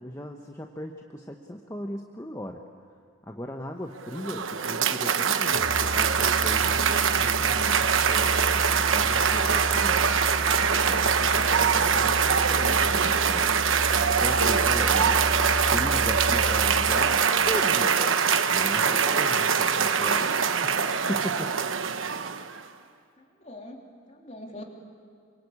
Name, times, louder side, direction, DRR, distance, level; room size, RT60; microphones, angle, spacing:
voice 1, 0.0-2.6 3.2-8.4 8.8-10.2 10.6-15.2 15.6-18.1 18.5-20.4 20.6-20.8 21.1-21.5, equal, 15° left, 2 dB, 1.0 m, -38 dB
Cheering / Applause, 4.0-22.6, right 6 dB, 75° right, 1.1 m, -23 dB
Musical instrument, 5.5-17.4, equal, 45° right, 2.2 m, -33 dB
voice 2, 23.4-24.6, left 1 dB, 35° left, 0 dB, 3.3 m, -44 dB
27.5 x 25.0 x 8.5 m, 2.2 s
head